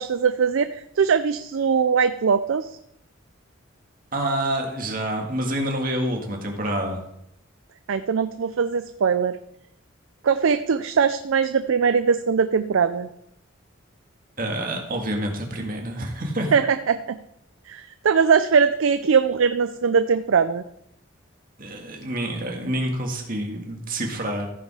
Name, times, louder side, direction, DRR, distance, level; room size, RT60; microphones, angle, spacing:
voice 1, 0.0-2.8 7.9-9.4 10.2-13.1 16.5-17.2 17.7-20.6, right 6 dB, 70° right, 11 dB, 0.4 m, -21 dB
voice 2, 4.1-7.0 14.4-16.5 21.6-24.5, right 1 dB, 45° right, 2 dB, 1.9 m, -27 dB
14.5 x 5.3 x 4.9 m, 0.77 s
head